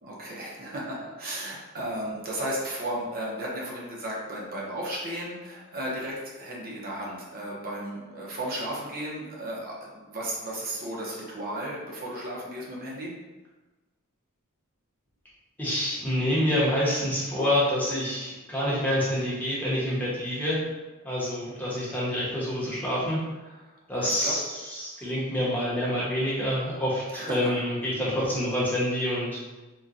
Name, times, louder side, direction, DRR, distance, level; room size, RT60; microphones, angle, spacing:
voice 1, 0.0-13.1 23.4-24.3 25.0-25.1 27.1-27.6, right 1 dB, 45° right, -4 dB, 0.6 m, -34 dB
voice 2, 15.6-20.6 21.0-23.2 23.9-29.4, left 1 dB, 10° left, -8 dB, 0.8 m, -27 dB
3.9 x 2.1 x 2.4 m, 1.2 s
head